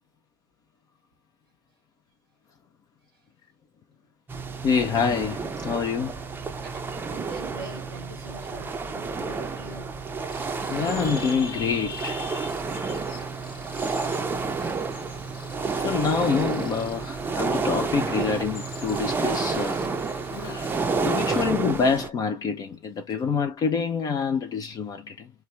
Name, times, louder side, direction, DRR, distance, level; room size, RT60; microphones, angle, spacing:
sound 1, 4.3-22.1, right 4 dB, 15° right, 0.6 m, -30 dB
voice 1, 4.6-6.2 10.7-13.0 15.7-19.8 20.4-20.7 21.0-25.3, left 6 dB, 30° left, 0.5 m, -26 dB
voice 2, 6.4-9.9 18.2-18.3, right 3 dB, 85° right, 1.0 m, -44 dB
Cricket, 10.3-21.4, left 4 dB, 80° left, 1.2 m, -46 dB
3.2 x 2.2 x 3.1 m
hypercardioid pair, 85°, 12 cm